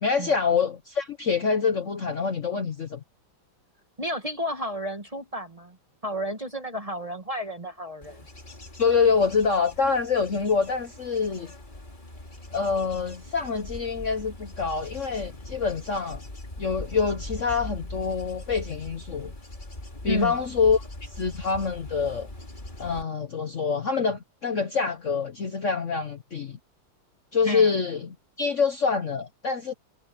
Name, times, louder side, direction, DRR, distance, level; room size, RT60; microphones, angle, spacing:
voice 1, 0.0-3.0 8.8-11.5 12.5-16.2 16.6-19.3 20.0-22.3 22.8-26.6 27.3-29.7, left 5 dB, 50° left, 1.1 m, -26 dB
voice 2, 4.0-5.8 6.0-8.2 20.1-20.4 27.4-27.7, equal, 20° right, 1.5 m, -32 dB
Bird / Insect / Wind, 8.0-23.0, left 1 dB, 25° left, 2.8 m, -41 dB
omnidirectional pair, 2.1 m